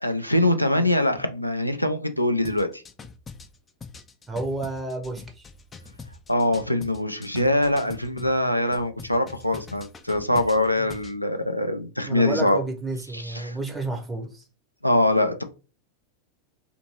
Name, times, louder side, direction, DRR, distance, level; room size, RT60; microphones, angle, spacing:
voice 1, 0.0-2.8 6.3-12.6 13.1-13.6 14.8-15.4, left 1 dB, 90° left, 0.4 m, -23 dB
sound 1, 2.4-8.3 8.7-11.2, left 4 dB, 20° left, 0.3 m, -43 dB
voice 2, 4.3-5.4 10.8-10.9 12.0-14.4, right 2 dB, 10° right, 0.7 m, -31 dB
2.6 x 2.5 x 3.0 m
figure-of-eight pair, 90°, 0 cm